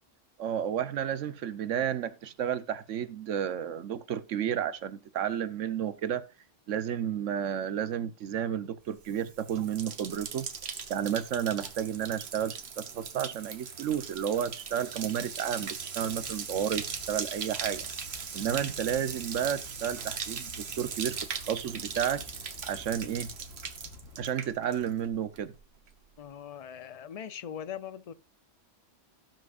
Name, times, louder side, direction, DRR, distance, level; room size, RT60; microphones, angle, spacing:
voice 1, 0.4-6.2 6.7-10.5 10.9-17.9 18.3-21.2 21.5-22.2 22.6-23.3 24.2-25.5, right 9 dB, 90° right, 1.1 m, -32 dB
Bathtub (filling or washing), 9.0-25.1 25.4-25.9, right 6 dB, 60° right, 1.3 m, -39 dB
sound 1, 13.3-21.6, equal, 5° left, 3.1 m, -61 dB
Animal, 16.1-24.3, left 5 dB, 85° left, 1.3 m, -52 dB
voice 2, 26.2-28.1, left 9 dB, 45° left, 0.5 m, -41 dB
17.5 x 6.1 x 2.5 m
omnidirectional pair, 1.2 m